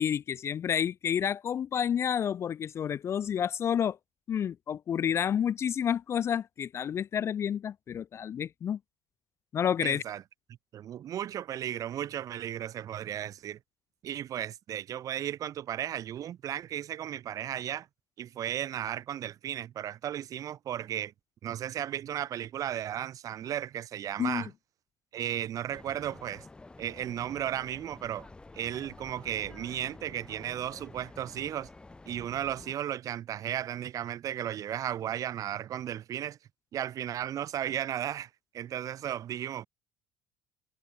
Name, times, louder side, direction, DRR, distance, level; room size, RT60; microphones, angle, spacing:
voice 1, 0.0-4.0 4.3-8.8 9.5-10.0 24.2-24.5, left 8 dB, 35° left, 0.3 m, -30 dB
voice 2, 9.8-10.2 10.7-13.6 14.0-17.9 18.2-21.1 21.4-24.5 25.1-26.5 26.8-28.3 28.5-31.7 32.1-36.4 36.7-39.7, right 11 dB, 45° right, 0.9 m, -35 dB
sound 1, 25.7-32.8, left 2 dB, 10° left, 0.9 m, -50 dB
supercardioid pair, 105°, 8 cm